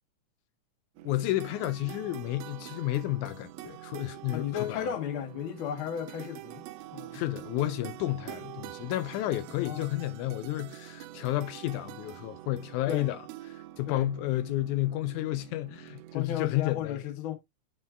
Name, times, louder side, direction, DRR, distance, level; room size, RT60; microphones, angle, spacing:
voice 1, 1.0-4.9 7.1-13.2 13.5-17.0, left 16 dB, 80° left, 1.9 m, -31 dB
sound 1, 1.0-16.2, right 15 dB, 80° right, 1.6 m, -45 dB
voice 2, 4.3-6.7 6.9-7.2 9.6-10.0 12.9-13.1 13.9-14.1 16.1-17.4, left 10 dB, 55° left, 1.7 m, -34 dB
9.5 x 4.6 x 2.4 m
omnidirectional pair, 3.5 m